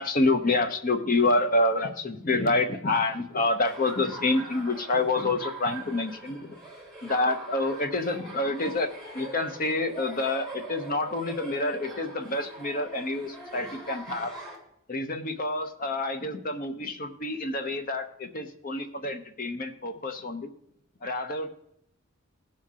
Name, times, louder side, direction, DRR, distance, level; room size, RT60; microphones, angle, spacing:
voice 1, 0.0-6.6 7.0-14.3 14.9-20.5 21.0-21.5, left 2 dB, 40° left, 7 dB, 0.9 m, -28 dB
Laughter, 3.6-14.6, right 2 dB, ahead, 2.3 m, -42 dB
17.0 x 5.8 x 3.7 m, 0.77 s
head